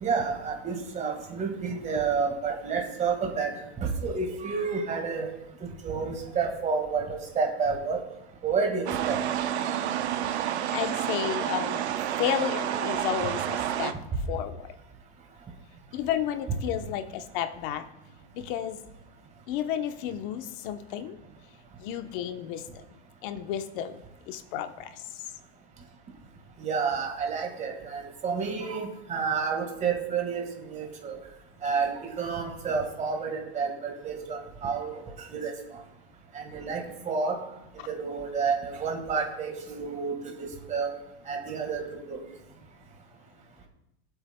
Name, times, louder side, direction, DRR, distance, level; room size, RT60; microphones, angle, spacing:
voice 1, 0.0-3.5 3.8-5.3 5.6-8.0 8.4-9.2 26.6-31.2 31.6-34.9 35.3-35.5 36.3-37.4 37.9-40.9 41.3-41.8 42.1-42.2, right 5 dB, 20° right, 3 dB, 1.8 m, -30 dB
sound 1, 8.9-13.9, right 10 dB, 90° right, 0.9 m, -29 dB
voice 2, 10.7-11.8 12.2-13.9 14.3-14.7 15.9-17.8 18.3-18.8 19.5-21.2 21.8-22.6 23.2-24.0 24.3-24.9, left 10 dB, 55° left, 8 dB, 1.0 m, -32 dB
21.0 x 8.3 x 2.3 m, 0.88 s
supercardioid pair, 140°, 32 cm